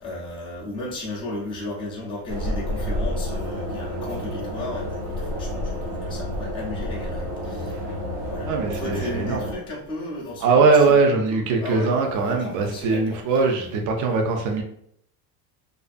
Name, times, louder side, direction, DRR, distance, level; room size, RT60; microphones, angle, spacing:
voice 1, 0.0-7.7 8.3-13.2, left 2 dB, 10° left, -5 dB, 0.4 m, -35 dB
sound 1, 2.3-9.6, equal, 85° right, 1.1 m, -29 dB
voice 2, 8.5-9.5 10.4-14.6, right 4 dB, 45° right, 2 dB, 0.5 m, -21 dB
2.5 x 2.3 x 2.4 m, 0.69 s
cardioid pair, 165°, 46 cm